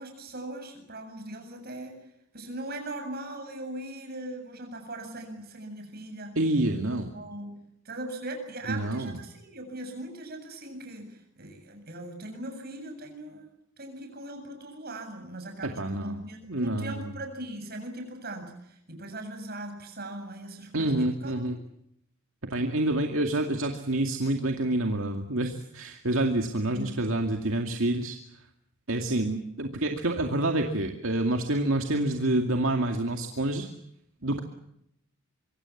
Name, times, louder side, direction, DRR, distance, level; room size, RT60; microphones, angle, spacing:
voice 1, 0.0-1.9 2.3-6.4 7.1-7.6 7.8-13.5 13.8-21.6 26.6-27.0 34.2-34.4, right 1 dB, 45° right, 5 dB, 7.6 m, -40 dB
voice 2, 6.4-7.1 8.7-9.2 15.6-17.1 20.7-21.6 22.5-28.2 28.9-33.7 34.2-34.4, right 1 dB, 70° right, 3 dB, 2.3 m, -28 dB
25.0 x 25.0 x 7.3 m, 0.77 s
head